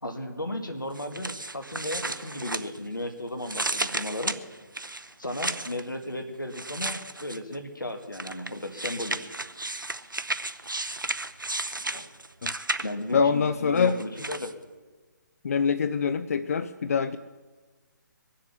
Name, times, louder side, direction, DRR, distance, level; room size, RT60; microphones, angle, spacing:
voice 1, 0.0-4.4 5.2-9.2 11.7-12.1 12.8-14.5, left 1 dB, 85° left, 7 dB, 1.9 m, -35 dB
sound 1, 0.9-3.1 3.4-5.8 6.5-7.6 8.1-13.1 13.8-14.5, right 2 dB, 85° right, 0.7 m, -33 dB
voice 2, 13.1-14.0 15.4-17.2, left 6 dB, 50° left, 12 dB, 0.5 m, -24 dB
22.0 x 7.5 x 7.2 m, 1.3 s
figure-of-eight pair, 140°, 10 cm